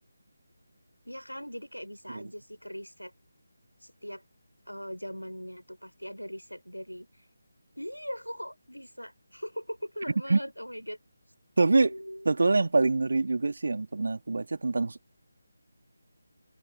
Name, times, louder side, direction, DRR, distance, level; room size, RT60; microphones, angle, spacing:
voice 1, 1.0-3.1 3.8-4.2 4.6-7.3 7.7-11.0 11.8-12.3, equal, 90° left, 3.2 m, -40 dB
voice 2, 11.6-11.9 12.3-15.0, right 3 dB, 55° right, 1.7 m, -25 dB
figure-of-eight pair, 155°, 0 cm